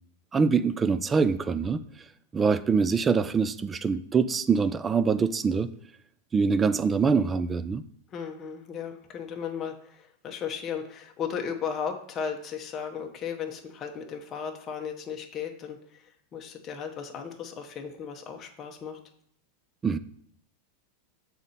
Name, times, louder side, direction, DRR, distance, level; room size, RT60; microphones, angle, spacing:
voice 1, 0.3-1.8 2.3-5.7 6.3-7.8 19.8-20.0, right 5 dB, 15° right, 14 dB, 0.3 m, -24 dB
voice 2, 8.1-16.0 16.3-19.0, left 7 dB, 25° left, 3 dB, 0.8 m, -35 dB
7.2 x 4.2 x 4.0 m, 0.68 s
supercardioid pair, 155°, 0 cm